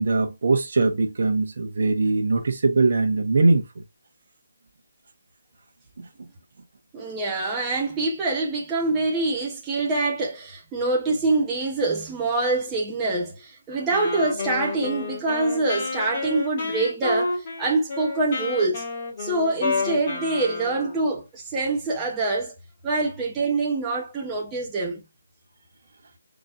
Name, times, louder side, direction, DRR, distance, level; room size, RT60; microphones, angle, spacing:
voice 1, 0.0-3.8 6.0-6.1, right 3 dB, 60° right, 1.1 m, -21 dB
voice 2, 6.9-18.8 19.2-22.5 22.8-25.0, right 3 dB, 15° right, 0.9 m, -25 dB
Wind instrument woodwind instrument, 13.9-21.0, left 3 dB, 40° left, 1.8 m, -30 dB
4.1 x 3.0 x 2.5 m
figure-of-eight pair, 160°, 0 cm